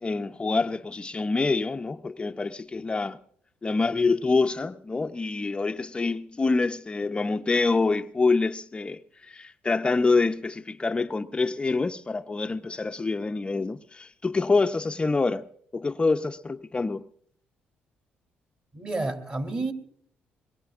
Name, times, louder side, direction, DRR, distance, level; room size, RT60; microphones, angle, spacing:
voice 1, 0.0-3.2 3.6-15.5 15.7-17.1, left 3 dB, 25° left, 0.5 m, -26 dB
voice 2, 18.7-19.7, right 2 dB, 35° right, 2.9 m, -30 dB
22.0 x 22.0 x 2.4 m
supercardioid pair, 70°, 4 cm